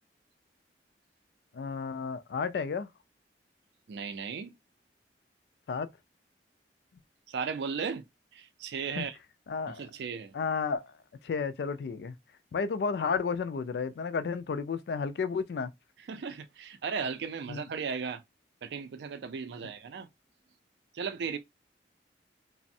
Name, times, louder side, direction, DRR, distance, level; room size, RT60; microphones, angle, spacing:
voice 1, 1.5-2.9 5.7-5.9 9.0-9.1 9.5-9.8 10.3-10.9 11.2-12.1 12.5-15.7 17.5-17.6, left 5 dB, 65° left, 0.3 m, -32 dB
voice 2, 3.9-4.6 7.3-8.1 8.3-9.2 9.7-10.4 16.1-18.2 18.6-20.1 20.9-21.4, right 6 dB, 70° right, 0.3 m, -36 dB
3.2 x 2.0 x 2.6 m
head